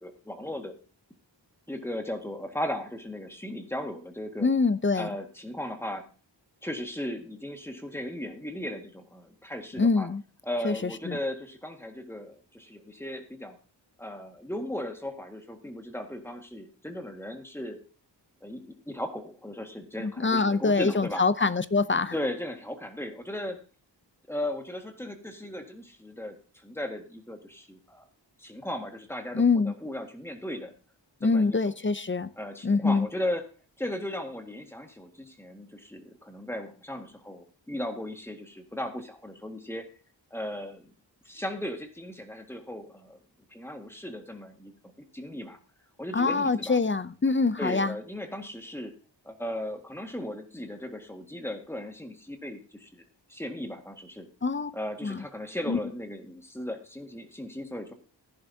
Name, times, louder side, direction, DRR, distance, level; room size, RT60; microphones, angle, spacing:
voice 1, 0.0-0.7 1.7-4.5 5.0-6.0 6.6-10.1 10.4-13.6 14.0-17.8 18.4-21.2 22.1-23.6 24.3-26.4 26.6-28.1 28.4-30.7 31.2-31.7 32.4-33.4 33.8-39.9 40.3-40.9 41.3-43.2 43.5-44.7 45.1-45.6 46.0-46.8 47.6-48.9 49.3-53.0 53.3-54.3 54.7-57.9, left 1 dB, 5° left, 1.8 m, -36 dB
voice 2, 4.4-5.1 9.8-10.2 10.6-11.2 20.0-22.1 29.3-29.7 31.2-32.3 32.6-33.1 46.1-47.9 54.4-54.7 55.0-55.2 55.7-55.8, left 4 dB, 25° left, 0.5 m, -25 dB
15.5 x 10.5 x 2.8 m
wide cardioid pair, 95°, 44 cm